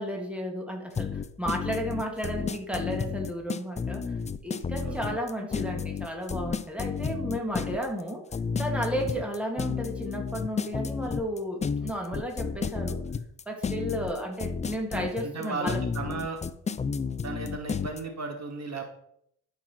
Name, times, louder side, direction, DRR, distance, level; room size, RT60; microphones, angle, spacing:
voice 1, 0.0-4.1 4.4-8.2 8.6-13.0 13.5-15.8, equal, 5° right, 1 dB, 2.2 m, -33 dB
sound 1, 0.9-18.0, left 5 dB, 15° left, 0.4 m, -31 dB
voice 2, 15.2-16.4 17.2-18.8, right 4 dB, 40° right, 4 dB, 1.8 m, -35 dB
11.5 x 5.9 x 5.8 m, 0.72 s
cardioid pair, 115°, 42 cm